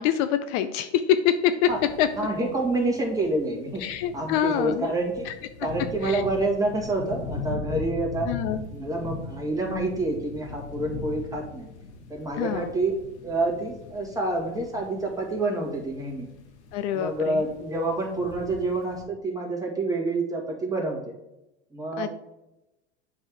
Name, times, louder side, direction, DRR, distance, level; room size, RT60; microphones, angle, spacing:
voice 1, 0.0-1.7 2.0-2.1 3.8-4.9 5.3-5.4 6.0-6.2 8.3-8.6 12.4-12.7 16.7-17.4 22.0-22.1, left 10 dB, 55° left, 10 dB, 0.5 m, -25 dB
sound 1, 1.6-19.0, left 4 dB, 80° left, 1.5 m, -40 dB
voice 2, 2.2-3.8 4.1-5.2 5.6-8.3 8.7-11.7 12.1-12.9 13.2-16.2 16.9-21.0 21.7-22.1, right 2 dB, 10° right, -2 dB, 2.1 m, -28 dB
7.6 x 4.1 x 4.7 m, 0.94 s
hypercardioid pair, 105°, 33 cm